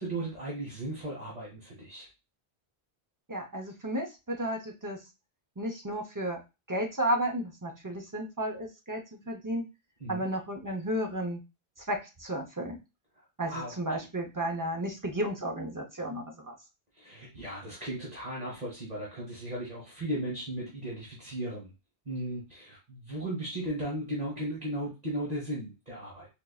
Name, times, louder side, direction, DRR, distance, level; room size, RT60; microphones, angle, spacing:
voice 1, 0.0-2.1 10.0-10.3 13.2-13.7 17.0-21.7 22.0-26.3, right 1 dB, 40° right, -5 dB, 1.3 m, -36 dB
voice 2, 3.3-5.0 5.6-6.4 6.7-9.6 10.1-11.4 11.9-12.8 13.4-16.5, right 1 dB, 25° right, 2 dB, 0.5 m, -33 dB
4.3 x 2.6 x 2.3 m, 0.27 s
omnidirectional pair, 1.1 m